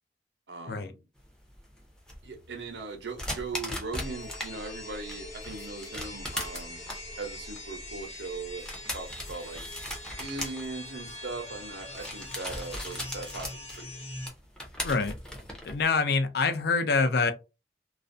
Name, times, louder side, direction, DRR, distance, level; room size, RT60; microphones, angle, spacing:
voice 1, 0.5-1.0 2.2-6.8 7.2-8.7 8.9-9.6 10.2-13.5 13.8-13.9, right 3 dB, 80° right, 0.7 m, -39 dB
sound 1, 1.2-4.5 4.9-15.8, left 1 dB, 5° left, 0.6 m, -39 dB
sound 2, 4.0-14.3, left 2 dB, 35° left, 0.9 m, -43 dB
voice 2, 14.8-15.2 15.6-17.3, left 4 dB, 65° left, 0.4 m, -25 dB
2.4 x 2.1 x 2.5 m
head